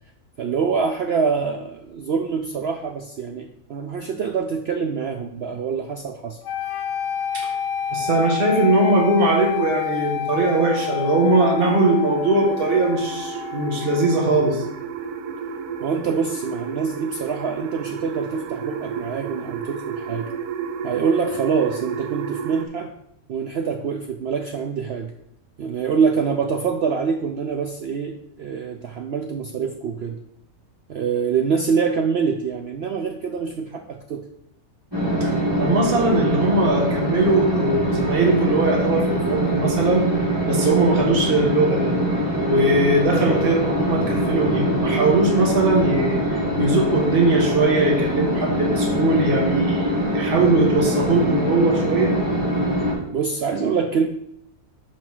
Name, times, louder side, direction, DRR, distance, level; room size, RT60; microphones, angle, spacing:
voice 1, 0.4-6.4 15.8-20.3 20.8-22.9 23.3-25.1 25.6-30.2 30.9-34.3 53.1-54.1, right 5 dB, 65° right, 5 dB, 0.6 m, -25 dB
sound 1, 6.4-14.5, left 9 dB, 65° left, 0.9 m, -29 dB
voice 2, 7.9-14.6 35.2-35.3 35.6-40.1 40.4-41.9 42.4-52.2, right 2 dB, 40° right, -1 dB, 1.6 m, -20 dB
sound 2, 10.5-22.7, right 6 dB, 90° right, 1.2 m, -32 dB
sound 3, 34.9-52.9, right 1 dB, 15° right, 2.7 m, -23 dB
5.5 x 5.3 x 5.5 m, 0.76 s
omnidirectional pair, 1.6 m